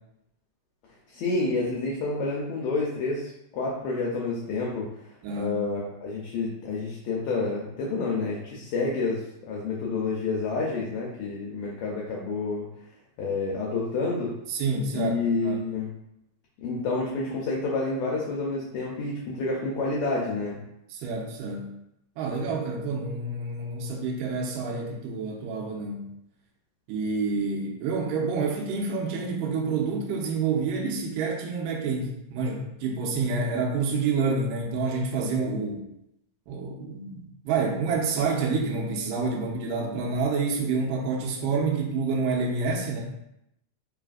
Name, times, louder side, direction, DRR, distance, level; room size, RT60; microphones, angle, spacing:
voice 1, 1.1-4.9 5.4-12.7 13.2-14.3 14.9-15.9 16.6-20.6, left 3 dB, 80° left, -3 dB, 1.6 m, -29 dB
voice 2, 5.2-5.6 14.5-15.6 20.9-21.7 22.2-26.1 26.9-35.8 36.5-43.0, right 4 dB, 80° right, -1 dB, 2.2 m, -28 dB
4.8 x 3.3 x 2.4 m, 0.83 s
omnidirectional pair, 3.9 m